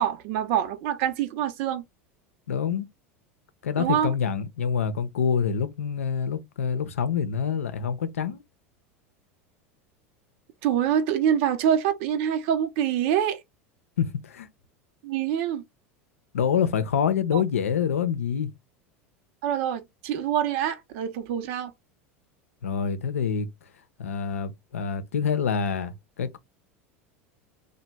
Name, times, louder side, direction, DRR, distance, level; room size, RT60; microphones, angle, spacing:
voice 1, 0.0-1.8 3.8-4.1 10.6-13.4 15.0-15.6 17.3-17.4 19.4-21.7, right 9 dB, 65° right, 0.8 m, -25 dB
voice 2, 2.5-2.9 3.6-8.4 14.0-14.5 16.3-18.5 22.6-23.5 24.0-26.4, left 7 dB, 90° left, 0.6 m, -26 dB
2.9 x 2.2 x 3.4 m
hypercardioid pair, 90°, 7 cm